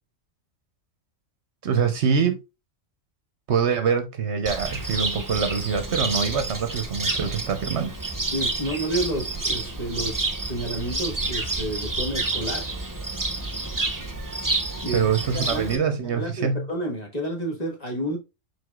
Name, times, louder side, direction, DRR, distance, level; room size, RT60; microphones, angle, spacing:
voice 1, 1.6-2.4 3.5-7.9 14.9-16.7, right 6 dB, 60° right, 1.0 m, -24 dB
Cricket, 4.5-15.8, right 2 dB, 20° right, 0.7 m, -29 dB
voice 2, 8.3-12.6 14.8-15.0 15.3-18.2, right 1 dB, 30° left, 1.5 m, -30 dB
4.7 x 4.6 x 2.3 m
omnidirectional pair, 1.4 m